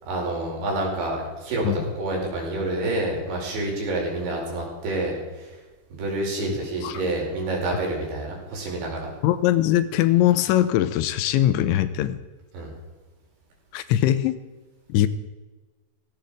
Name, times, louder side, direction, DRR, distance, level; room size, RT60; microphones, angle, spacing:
voice 1, 0.0-5.6 5.9-9.1 12.5-12.7, right 2 dB, 65° right, -1 dB, 7.1 m, -28 dB
voice 2, 9.2-12.2 13.7-14.4 14.9-15.1, left 13 dB, 85° left, 13 dB, 3.0 m, -21 dB
16.5 x 16.5 x 5.0 m, 1.3 s
omnidirectional pair, 5.5 m